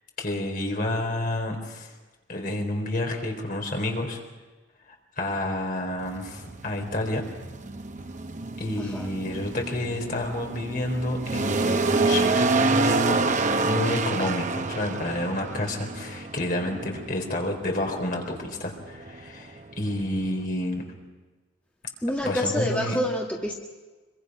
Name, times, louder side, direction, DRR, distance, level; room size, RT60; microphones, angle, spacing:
voice 1, 0.2-1.9 2.3-4.2 5.2-7.2 8.6-13.2 13.6-20.8 22.2-23.0, left 1 dB, 50° left, 2 dB, 3.9 m, -29 dB
sound 1, 6.0-20.5, right 3 dB, 45° right, 0.8 m, -28 dB
voice 2, 22.0-23.5, equal, 10° left, -2 dB, 1.9 m, -27 dB
25.0 x 23.5 x 5.5 m, 1.2 s
head